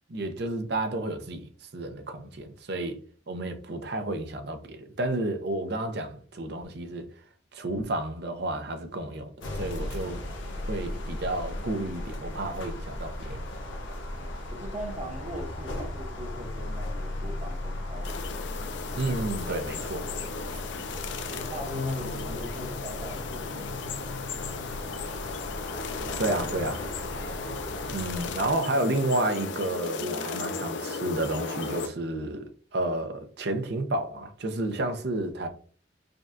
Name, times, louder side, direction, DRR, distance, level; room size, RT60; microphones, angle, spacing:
voice 1, 0.1-3.0 3.3-7.1 7.5-10.2 10.6-13.5 18.9-20.1 26.2-26.8 27.9-32.4 32.7-35.5, right 1 dB, 60° right, 0.6 m, -31 dB
sound 1, 9.4-28.5, left 1 dB, 90° left, 0.8 m, -36 dB
voice 2, 14.2-18.2 21.2-23.8 26.0-26.2 27.2-27.7, right 1 dB, 35° right, 0.9 m, -41 dB
sound 2, 18.0-31.9, left 4 dB, 70° left, 0.4 m, -36 dB
5.1 x 2.3 x 2.6 m
head